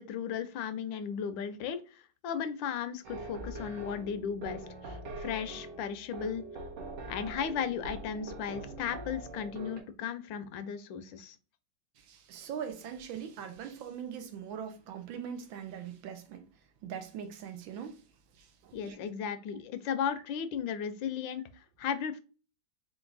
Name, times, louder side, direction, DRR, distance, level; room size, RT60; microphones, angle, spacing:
voice 1, 0.0-6.4 7.1-11.4 18.7-22.2, left 7 dB, 80° left, 1.3 m, -36 dB
sound 1, 3.0-9.8, right 2 dB, 65° right, 2.0 m, -43 dB
voice 2, 12.0-16.4 16.8-18.0 18.4-19.0, right 8 dB, 85° right, 1.5 m, -41 dB
4.5 x 2.4 x 3.9 m
omnidirectional pair, 2.1 m